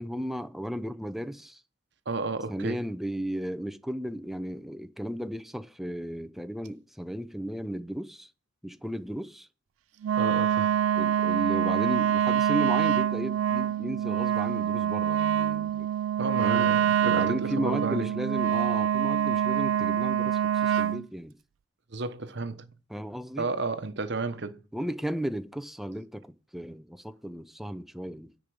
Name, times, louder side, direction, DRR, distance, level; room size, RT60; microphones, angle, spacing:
voice 1, 0.0-1.6 2.5-8.3 8.6-9.5 11.0-15.9 16.4-21.3 22.9-23.5 24.7-28.3, equal, ahead, 0.6 m, -35 dB
voice 2, 2.1-2.8 10.2-10.8 16.2-18.1 20.7-20.9 21.9-22.7 23.4-24.6, right 3 dB, 60° right, 1.1 m, -32 dB
Wind instrument woodwind instrument, 10.0-21.0, right 9 dB, 90° right, 0.4 m, -25 dB
10.0 x 5.3 x 6.2 m
head